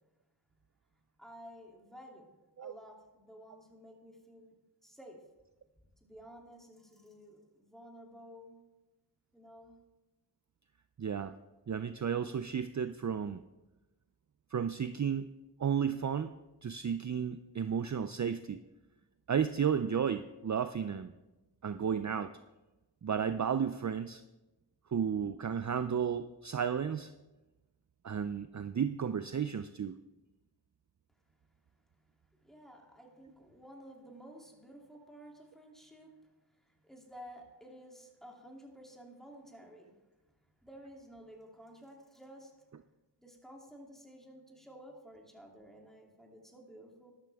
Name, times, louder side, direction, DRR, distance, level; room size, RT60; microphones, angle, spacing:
voice 1, 1.2-2.3 2.6-4.5 4.8-5.2 6.0-8.6 9.3-9.7 32.4-36.1 36.8-39.9 40.6-42.5 43.2-47.1, equal, ahead, -1 dB, 2.7 m, -53 dB
voice 2, 11.0-11.3 11.7-13.4 14.5-15.3 15.6-16.3 16.6-18.6 19.3-21.1 21.6-22.3 23.0-24.2 24.9-27.1 28.0-30.0, right 7 dB, 45° right, 10 dB, 0.4 m, -33 dB
13.0 x 12.0 x 3.5 m, 1.0 s
wide cardioid pair, 50°, 41 cm